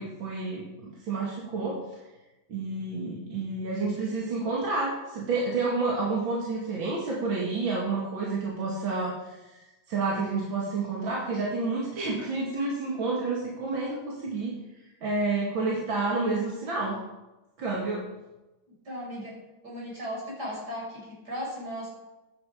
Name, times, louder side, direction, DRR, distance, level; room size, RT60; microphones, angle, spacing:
voice 1, 0.0-1.8 2.5-14.5 15.0-17.0 17.6-18.0, right 3 dB, 70° right, -4 dB, 2.9 m, -29 dB
voice 2, 18.8-19.4 19.6-21.9, equal, 50° right, -4 dB, 6.5 m, -36 dB
16.0 x 11.0 x 5.1 m, 1.1 s
omnidirectional pair, 2.2 m